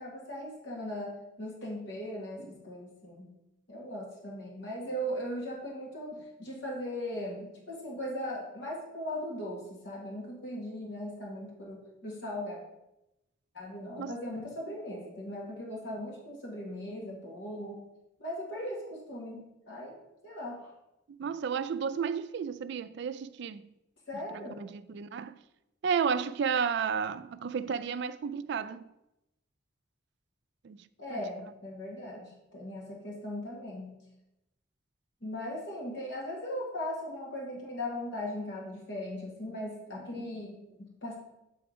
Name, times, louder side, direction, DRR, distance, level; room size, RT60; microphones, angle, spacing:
voice 1, 0.0-3.3 3.7-12.6 13.5-17.8 18.2-20.0 20.2-20.7 24.1-24.6 31.0-33.9 35.2-41.2, left 1 dB, 60° left, 1.5 m, -38 dB
voice 2, 21.2-23.7 24.3-25.4 25.8-28.8 30.6-30.8 31.1-31.2, right 6 dB, 55° right, 0.3 m, -32 dB
7.7 x 3.6 x 4.9 m
head